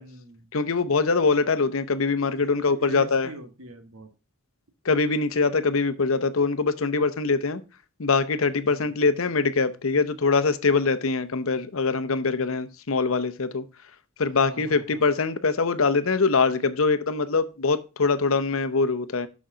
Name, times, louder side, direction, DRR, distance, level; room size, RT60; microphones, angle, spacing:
voice 1, 0.0-0.5 2.2-4.1 8.6-8.9 14.3-15.0, right 2 dB, 75° right, 1.6 m, -43 dB
voice 2, 0.5-3.3 4.8-7.6 8.0-13.6 14.2-19.3, left 4 dB, 70° left, 0.8 m, -23 dB
6.4 x 6.2 x 5.6 m
head